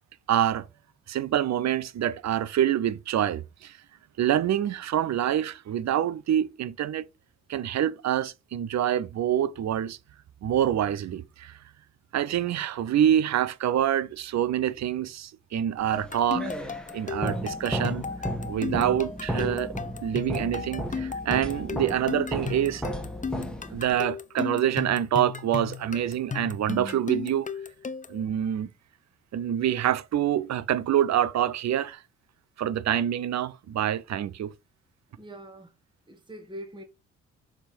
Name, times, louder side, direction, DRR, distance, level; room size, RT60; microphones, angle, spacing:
voice 1, 0.3-0.7 1.1-3.8 4.2-7.1 7.5-10.0 10.4-11.6 12.1-16.5 16.9-18.0 18.5-19.7 20.0-22.8 23.7-27.5 28.1-28.7 29.3-32.0 32.6-34.5, right 10 dB, 50° right, 0.7 m, -26 dB
sound 1, 15.9-28.2, left 5 dB, 20° left, 0.8 m, -35 dB
sound 2, 15.9-24.1, right 1 dB, ahead, 1.6 m, -34 dB
voice 2, 35.2-35.7 36.1-36.8, right 1 dB, 15° right, 1.5 m, -42 dB
7.2 x 3.6 x 5.1 m
hypercardioid pair, 50°, 36 cm